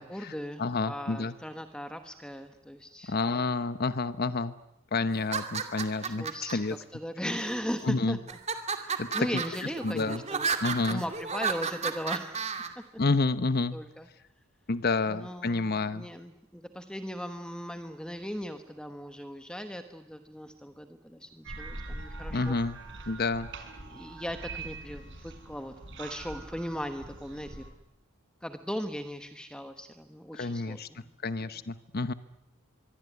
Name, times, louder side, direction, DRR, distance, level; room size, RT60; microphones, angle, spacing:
voice 1, 0.0-3.2 5.7-8.4 8.8-10.5 10.9-12.4 13.7-14.1 15.1-22.6 23.8-27.6 28.4-31.1 31.4-31.5, equal, 5° left, 7 dB, 1.3 m, -38 dB
voice 2, 0.6-1.3 3.1-4.5 4.9-6.8 7.8-8.2 9.0-9.4 9.8-10.2 10.6-11.0 13.0-13.7 14.7-16.1 22.3-22.8 23.1-23.5 30.3-30.9 31.2-32.1, left 3 dB, 45° left, 13 dB, 0.9 m, -29 dB
sound 1, 5.2-6.5 7.3-7.8 8.3-12.7, right 5 dB, 30° right, 2.4 m, -32 dB
sound 2, 21.4-27.7, right 3 dB, 60° right, 5.0 m, -43 dB
25.0 x 22.5 x 9.5 m, 0.89 s
head